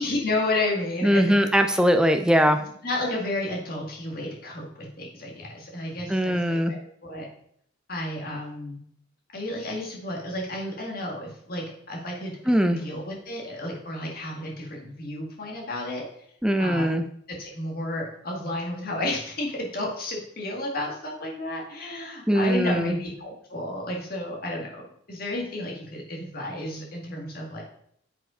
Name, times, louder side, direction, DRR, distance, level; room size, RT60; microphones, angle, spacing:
voice 1, 0.0-1.5 2.8-7.3 7.9-8.8 9.3-12.3 12.8-16.0 16.6-17.0 17.3-24.8 25.1-27.6, left 1 dB, 50° left, -1 dB, 1.9 m, -32 dB
voice 2, 1.0-2.6 6.1-6.7 12.5-12.8 16.4-17.0 22.3-23.0, equal, 5° right, 6 dB, 0.6 m, -21 dB
8.0 x 5.2 x 5.0 m, 0.69 s
head